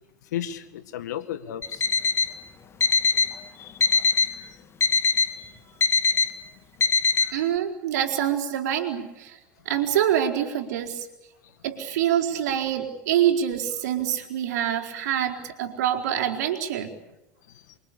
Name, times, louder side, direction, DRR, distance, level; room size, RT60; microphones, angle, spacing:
voice 1, 0.3-1.8 3.5-3.8 4.4-4.5 5.4-5.5 7.2-7.3, left 10 dB, 75° left, 1.9 m, -34 dB
Alarm, 1.6-2.3 2.8-3.3 3.8-4.3 4.8-5.3 5.8-6.3 6.8-7.3, left 5 dB, 30° left, 2.3 m, -21 dB
voice 2, 7.3-9.4 9.7-11.1 11.6-16.9, right 10 dB, 70° right, 4.3 m, -25 dB
28.5 x 23.5 x 8.7 m
hypercardioid pair, 80°, 9 cm